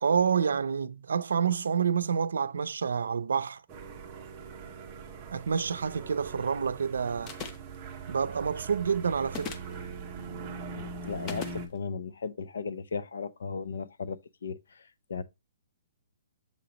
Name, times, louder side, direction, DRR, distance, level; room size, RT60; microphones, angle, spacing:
voice 1, 0.0-3.6 5.3-7.3 8.1-9.6, right 6 dB, 85° right, 0.5 m, -28 dB
sound 1, 3.7-11.7, right 4 dB, 15° right, 0.8 m, -42 dB
sound 2, 7.3-7.8 9.3-9.8 11.3-11.6, left 6 dB, 15° left, 0.4 m, -38 dB
voice 2, 10.7-15.2, left 5 dB, 70° left, 0.6 m, -36 dB
7.1 x 2.9 x 5.1 m
hypercardioid pair, 175°, 0 cm